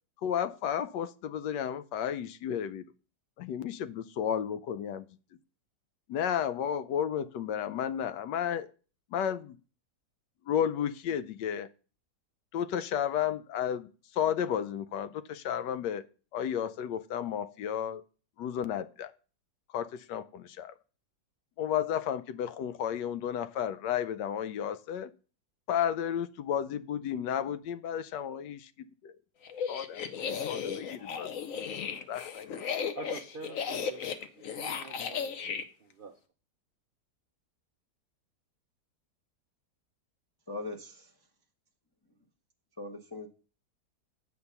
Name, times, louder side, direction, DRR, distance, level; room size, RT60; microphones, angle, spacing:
voice 1, 0.2-2.9 3.4-5.1 6.1-8.7 9.1-9.6 10.4-11.7 12.5-16.1 16.3-18.0 18.4-19.1 19.7-20.8 21.6-25.1 25.7-29.2 29.7-31.3 32.1-32.5, left 9 dB, 85° left, 1.2 m, -33 dB
sound 1, 29.5-35.6, left 7 dB, 60° left, 1.0 m, -35 dB
voice 2, 32.9-34.0 34.4-35.3 35.8-36.2, right 4 dB, 80° right, 0.4 m, -45 dB
voice 3, 40.5-41.1 42.8-43.3, left 2 dB, 20° left, 0.6 m, -40 dB
8.4 x 4.5 x 6.8 m
omnidirectional pair, 1.8 m